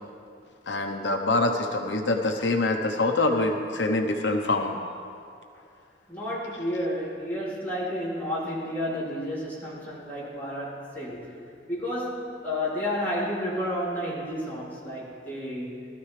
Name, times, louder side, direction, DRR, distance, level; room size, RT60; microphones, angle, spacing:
voice 1, 0.7-4.8, left 2 dB, 85° left, 3 dB, 0.9 m, -25 dB
voice 2, 6.1-15.9, equal, 10° left, -9 dB, 3.6 m, -31 dB
19.5 x 13.5 x 3.3 m, 2.4 s
head